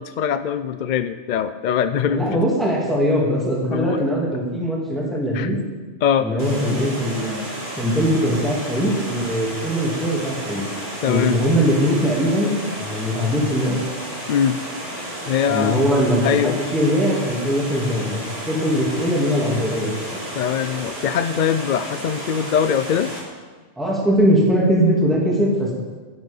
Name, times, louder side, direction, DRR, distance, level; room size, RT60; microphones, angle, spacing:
voice 1, 0.0-2.4 3.7-4.0 5.3-5.5 6.0-6.3 11.0-11.4 14.3-14.6 15.3-15.8 16.2-16.6 20.3-23.1, left 8 dB, 60° left, 11 dB, 0.5 m, -22 dB
voice 2, 2.0-5.6 6.2-7.4 7.8-10.6 11.0-13.8 15.5-18.2 18.5-20.2 23.8-25.8, equal, ahead, -5 dB, 2.8 m, -21 dB
Water, 6.4-23.2, right 1 dB, 40° right, 3.6 m, -32 dB
12.0 x 11.5 x 5.4 m, 1.4 s
omnidirectional pair, 1.2 m